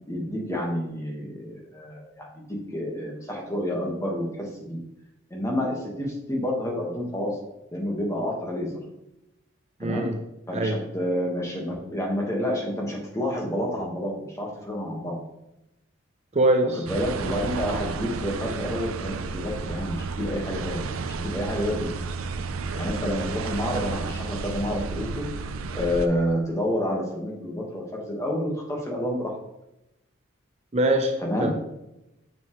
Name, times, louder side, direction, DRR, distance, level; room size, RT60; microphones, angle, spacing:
voice 1, 0.1-2.4 2.7-4.8 5.3-7.4 7.7-8.8 9.8-10.1 10.5-15.2 16.7-21.9 22.7-29.4 31.2-31.5, equal, 15° left, -1 dB, 1.5 m, -29 dB
voice 2, 9.8-10.2 10.5-10.8 16.3-16.8 30.7-31.5, right 1 dB, 30° right, 4 dB, 0.5 m, -23 dB
sound 1, 16.9-26.1, right 4 dB, 90° right, 0.6 m, -32 dB
7.0 x 6.7 x 3.1 m, 0.90 s
head